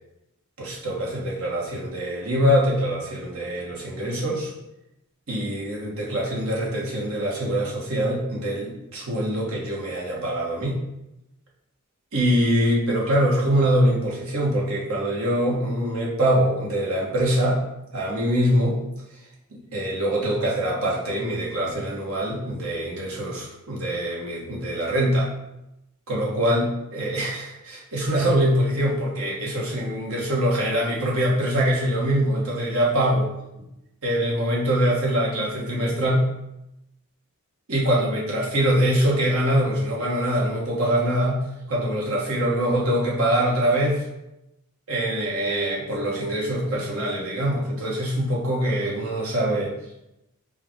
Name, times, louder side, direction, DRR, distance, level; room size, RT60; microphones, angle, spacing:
voice 1, 0.6-4.5 5.3-10.8 12.1-17.6 17.9-18.8 19.7-25.3 26.1-33.3 34.0-36.3 37.7-41.4 41.7-44.0 44.9-49.7, equal, 75° right, -4 dB, 1.3 m, -23 dB
4.9 x 2.4 x 4.5 m, 0.88 s
head